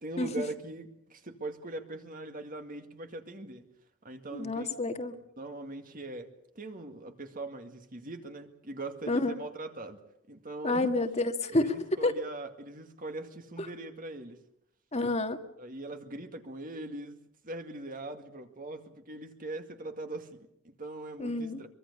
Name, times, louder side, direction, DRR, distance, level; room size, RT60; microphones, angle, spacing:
voice 1, 0.0-3.7 4.0-4.7 5.4-6.3 6.6-10.0 10.3-10.9 11.5-14.4 15.6-17.2 17.4-21.7, right 2 dB, 40° right, 6 dB, 2.1 m, -41 dB
voice 2, 4.3-5.2 9.1-9.3 10.6-11.7 12.0-12.1 14.9-15.4 21.2-21.6, left 2 dB, 30° left, 7 dB, 1.8 m, -29 dB
23.5 x 23.5 x 6.9 m, 0.78 s
head